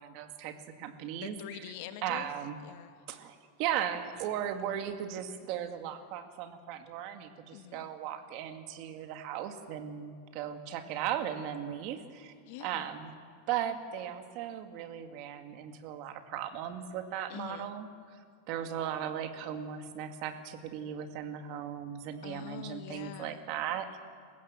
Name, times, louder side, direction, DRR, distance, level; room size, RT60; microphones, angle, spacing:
voice 1, 0.0-1.4 2.0-2.6 3.1-12.3 12.6-13.1 13.5-17.9 18.5-24.0, right 9 dB, 45° right, 7 dB, 1.9 m, -37 dB
voice 2, 1.2-2.3 2.6-3.0 7.5-7.9 12.5-12.8 17.3-17.7 22.2-23.4, left 11 dB, 55° left, 10 dB, 1.3 m, -45 dB
27.5 x 16.0 x 7.5 m, 2.2 s
supercardioid pair, 155°, 0 cm